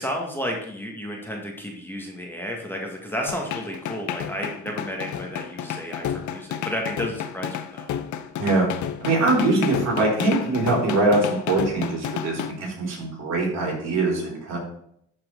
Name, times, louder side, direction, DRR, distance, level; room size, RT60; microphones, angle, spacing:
voice 1, 0.0-7.9, equal, 5° left, 0 dB, 1.6 m, -32 dB
sound 1, 3.3-12.5, left 9 dB, 70° left, 0.7 m, -31 dB
voice 2, 9.0-14.6, right 2 dB, 60° right, -2 dB, 3.7 m, -23 dB
11.5 x 4.4 x 3.8 m, 0.71 s
cardioid pair, 90°, 30 cm